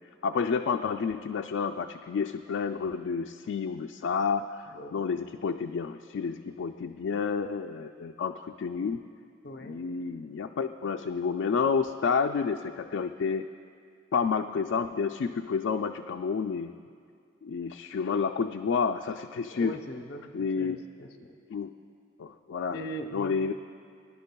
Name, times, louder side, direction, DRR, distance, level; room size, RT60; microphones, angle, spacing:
voice 1, 0.2-9.0 9.6-13.5 14.1-16.8 17.4-19.8 20.3-20.8 21.5-21.7 22.2-22.8 23.1-23.5, left 5 dB, 75° left, 5 dB, 0.3 m, -30 dB
voice 2, 4.7-5.1 9.4-9.8 19.5-21.3 22.7-23.4, equal, 55° left, 4 dB, 0.7 m, -40 dB
23.5 x 11.0 x 2.2 m, 2.2 s
head